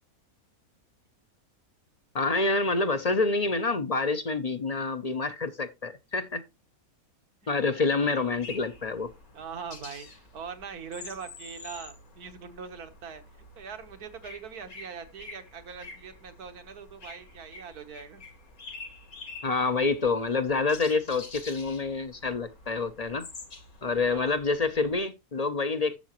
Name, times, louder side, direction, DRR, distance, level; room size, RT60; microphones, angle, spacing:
voice 1, 2.1-6.4 7.5-9.1 19.4-23.3 23.8-26.0, left 3 dB, 40° left, 0.6 m, -27 dB
sound 1, 8.2-25.0, left 3 dB, 70° left, 2.7 m, -47 dB
voice 2, 9.3-13.2 13.6-18.2 24.1-24.4, right 6 dB, 80° right, 1.8 m, -42 dB
12.0 x 7.5 x 3.0 m
omnidirectional pair, 1.6 m